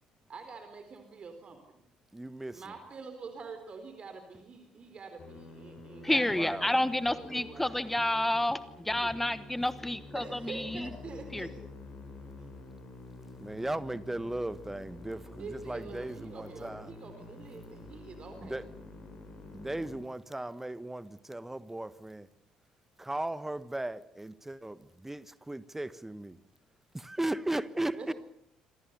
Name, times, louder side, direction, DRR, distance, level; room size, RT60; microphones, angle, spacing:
voice 1, 0.3-1.8 2.5-7.9 8.8-9.1 10.1-11.5 15.4-18.6 27.9-28.1, right 4 dB, 35° right, 4.1 m, -46 dB
voice 2, 2.1-2.6 6.3-6.7 13.4-16.9 18.4-18.6 19.5-22.3 23.0-26.4 27.1-28.1, right 1 dB, 10° right, 1.5 m, -36 dB
Musical instrument, 5.2-20.0, left 2 dB, 45° left, 8.0 m, -48 dB
voice 3, 6.0-10.9 11.3-11.5, left 1 dB, 5° left, 1.2 m, -30 dB
27.5 x 25.0 x 6.9 m
figure-of-eight pair, 50°, 3 cm